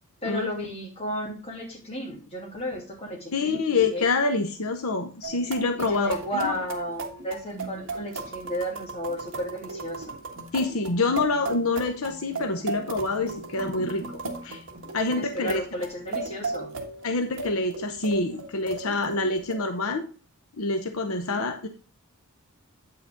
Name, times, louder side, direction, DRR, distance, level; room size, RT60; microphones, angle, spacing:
voice 1, 0.2-4.1 5.8-10.2 15.2-16.7 21.1-21.4, equal, 30° left, -1 dB, 2.7 m, -33 dB
voice 2, 3.3-6.6 10.5-14.6 14.9-15.6 17.0-20.1 20.6-21.7, left 3 dB, 70° left, 7 dB, 0.8 m, -26 dB
sound 1, 5.2-19.6, right 3 dB, 60° right, 1.6 m, -37 dB
8.6 x 5.8 x 3.7 m, 0.38 s
head